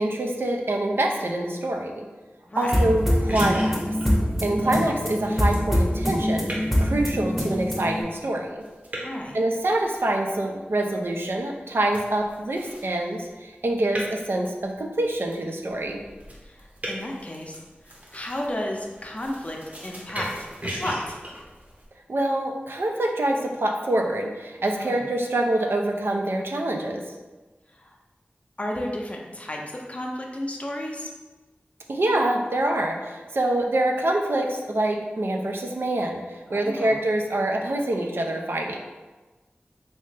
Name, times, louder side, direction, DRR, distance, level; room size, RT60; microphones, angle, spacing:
voice 1, 0.0-2.1 2.6-3.8 4.4-8.6 9.3-16.0 22.1-27.0 31.9-36.2 36.5-38.8, right 1 dB, 75° right, 2 dB, 0.4 m, -25 dB
voice 2, 2.4-2.8 4.5-4.9 9.0-9.4 16.4-17.6 17.8-20.3 20.7-21.2 24.7-25.0 27.7-28.0 28.6-31.1 36.5-37.0, left 1 dB, 35° left, 0 dB, 0.5 m, -33 dB
sound 1, 2.6-21.9, equal, 40° right, 0.8 m, -40 dB
sound 2, 2.7-8.0, equal, 5° right, 0.7 m, -24 dB
3.2 x 2.8 x 3.2 m, 1.2 s
wide cardioid pair, 65°, 4 cm